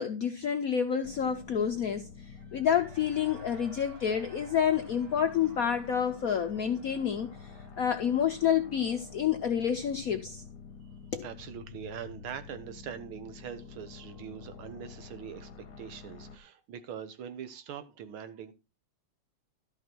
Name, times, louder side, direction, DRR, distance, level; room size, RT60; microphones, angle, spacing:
voice 1, 0.0-2.1 2.5-7.5 7.8-10.4 11.1-11.3, left 8 dB, 70° left, 0.8 m, -28 dB
sound 1, 1.0-16.4, left 5 dB, 55° left, 1.2 m, -48 dB
Cheering / Crowd, 2.3-9.1, right 3 dB, 50° right, 2.7 m, -55 dB
voice 2, 11.2-18.5, right 8 dB, 75° right, 1.9 m, -43 dB
12.5 x 5.8 x 4.5 m
omnidirectional pair, 2.3 m